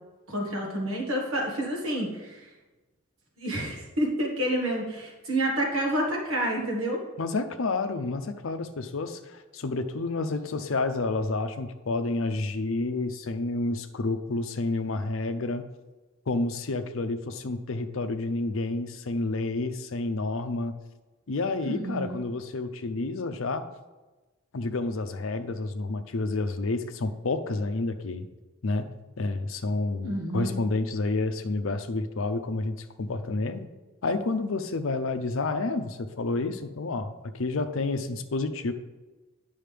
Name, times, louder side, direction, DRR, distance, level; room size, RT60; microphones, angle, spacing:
voice 1, 0.3-2.5 3.4-7.0 21.6-22.2 30.0-30.5, right 1 dB, 75° right, 0 dB, 1.5 m, -29 dB
voice 2, 7.2-15.7 16.3-20.7 21.3-23.7 24.5-28.3 28.6-28.9 29.2-33.7 34.0-38.7, left 3 dB, 70° left, 9 dB, 0.6 m, -29 dB
9.2 x 5.5 x 3.4 m, 1.2 s
head